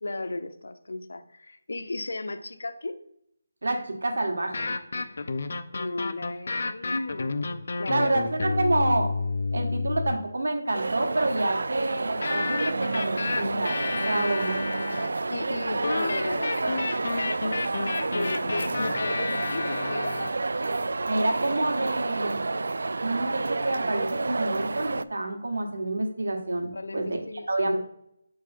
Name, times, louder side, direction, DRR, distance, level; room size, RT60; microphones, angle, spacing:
voice 1, 0.0-3.0 5.7-7.3 7.8-8.3 15.3-17.1 17.9-20.2 26.7-27.8, left 2 dB, 80° left, 10 dB, 0.7 m, -35 dB
voice 2, 3.6-4.7 7.9-9.1 9.5-13.8 14.0-14.6 21.1-22.4 23.0-27.2 27.5-27.8, right 2 dB, 90° right, 3 dB, 1.6 m, -28 dB
sound 1, 4.4-10.3 12.2-15.2 15.8-20.3, left 3 dB, 50° left, 0.5 m, -30 dB
sound 2, 10.7-25.0, right 3 dB, 70° right, 0.3 m, -30 dB
6.9 x 4.8 x 4.4 m, 0.74 s
hypercardioid pair, 175°, 0 cm